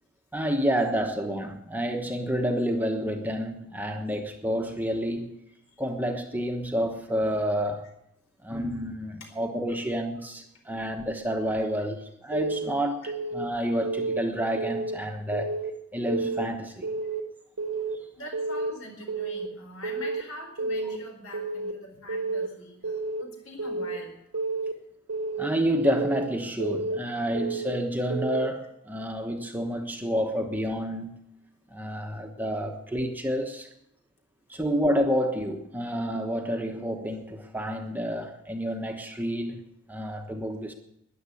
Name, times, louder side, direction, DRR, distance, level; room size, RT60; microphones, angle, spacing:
voice 1, 0.3-5.4 5.8-7.8 8.4-15.5 15.9-16.9 17.6-17.8 25.4-31.2 31.7-33.7 34.5-39.6 39.9-40.7, equal, 10° right, 1.1 m, -29 dB
Keyboard (musical) / Alarm, 12.3-12.7 13.1-13.4 13.8-14.2 14.6-15.0 15.3-15.7 16.1-16.5 16.8-17.2 17.6-18.0 18.3-18.7 19.1-19.5 19.8-20.2 20.6-21.0 21.3-21.7 22.1-22.5 22.8-23.2 23.6-24.0 24.3-24.7 25.1-25.5 25.8-26.2 26.6-27.0 27.3-27.7 28.1-28.5, right 3 dB, 90° right, 1.4 m, -30 dB
voice 2, 18.2-24.2 31.6-31.7, left 1 dB, 70° left, 4.5 m, -43 dB
13.5 x 10.5 x 8.4 m
head